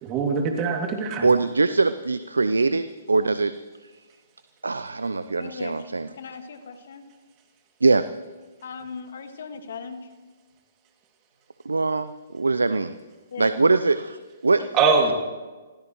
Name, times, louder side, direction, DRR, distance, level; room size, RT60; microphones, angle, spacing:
voice 1, 0.0-1.3 14.7-15.1, right 5 dB, 30° right, 2 dB, 2.6 m, -22 dB
voice 2, 1.2-3.5 4.6-6.1 7.8-8.0 11.6-13.0 13.4-14.0 14.4-14.6, right 3 dB, 80° right, 12 dB, 0.6 m, -22 dB
voice 3, 5.4-5.9 6.1-7.0 8.6-10.2 13.3-13.5 14.6-15.1, left 5 dB, 60° left, 8 dB, 1.8 m, -38 dB
26.0 x 16.5 x 3.2 m, 1.3 s
figure-of-eight pair, 130°, 0 cm